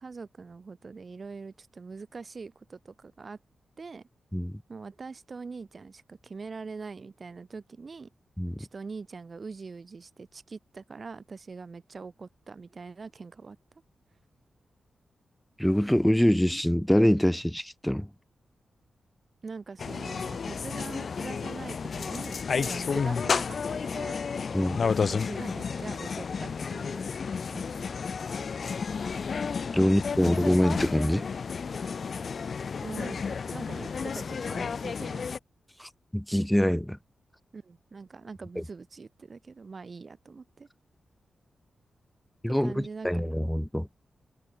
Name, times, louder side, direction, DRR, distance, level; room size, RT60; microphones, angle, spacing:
voice 1, 0.0-3.4 3.8-4.0 4.7-8.1 8.6-13.6 19.4-24.2 25.0-27.0 27.5-27.8 29.8-29.9 32.8-35.2 37.5-40.7 42.4-43.4, right 4 dB, 50° right, 1.5 m, -43 dB
voice 2, 8.4-8.7 15.6-18.1 24.5-24.8 29.7-31.3 35.8-37.0 38.6-38.7 42.4-42.7 43.0-43.9, equal, 5° left, 1.1 m, -24 dB
sound 1, 19.8-35.4, left 5 dB, 60° left, 0.5 m, -32 dB
cardioid pair, 60°, 0 cm